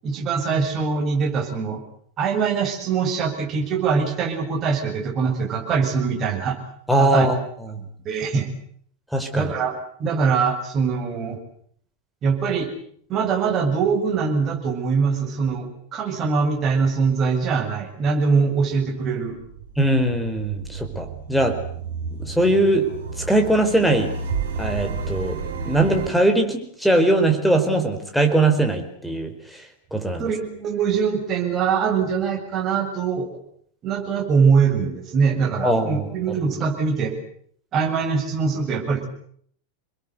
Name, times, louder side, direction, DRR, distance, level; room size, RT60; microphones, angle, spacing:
voice 1, 0.0-1.8 2.2-6.6 7.0-7.3 8.0-8.5 9.3-11.4 12.2-12.7 13.1-19.4 30.2-33.3 33.8-37.1 37.7-39.1, right 5 dB, 30° right, 2 dB, 7.5 m, -22 dB
voice 2, 6.9-7.4 9.1-9.5 19.8-21.6 22.2-22.9 23.2-24.1 24.6-25.4 25.6-29.3 29.9-30.2 35.6-36.1, right 1 dB, ahead, 6 dB, 4.8 m, -20 dB
sound 1, 18.9-26.1, right 5 dB, 65° right, 6.5 m, -32 dB
29.5 x 21.5 x 8.2 m, 0.64 s
figure-of-eight pair, 90°, 0 cm